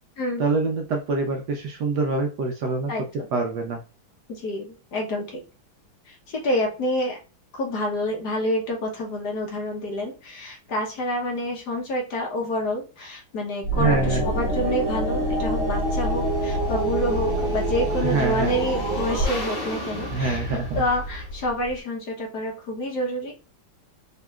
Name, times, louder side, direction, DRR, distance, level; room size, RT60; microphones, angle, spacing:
voice 1, 0.4-2.9 3.3-3.8 13.8-14.2 18.0-18.5 20.1-20.8, right 3 dB, 70° right, 2 dB, 1.1 m, -25 dB
voice 2, 2.9-3.3 4.3-5.4 6.1-7.2 7.5-23.3, left 1 dB, 55° left, 0 dB, 1.4 m, -28 dB
sound 1, 13.6-21.7, right 1 dB, 40° left, 2.9 m, -26 dB
5.3 x 2.9 x 2.3 m, 0.33 s
omnidirectional pair, 2.2 m